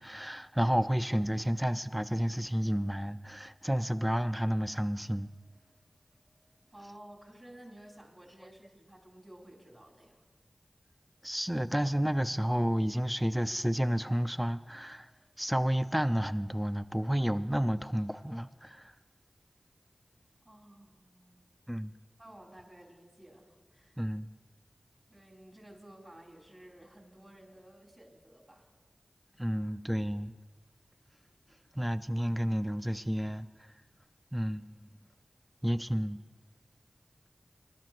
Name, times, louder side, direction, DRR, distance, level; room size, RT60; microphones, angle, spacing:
voice 1, 0.0-5.3 11.2-15.1 15.4-18.9 21.7-21.9 24.0-24.3 29.4-30.3 31.7-33.5 34.3-34.9 35.6-36.2, equal, 5° right, 0.5 m, -31 dB
voice 2, 6.7-10.2 10.8-11.0 20.4-21.5 22.2-24.0 25.1-28.7 29.4-29.6, right 1 dB, 35° right, 3.8 m, -54 dB
23.5 x 12.0 x 3.1 m
cardioid pair, 40°, 0 cm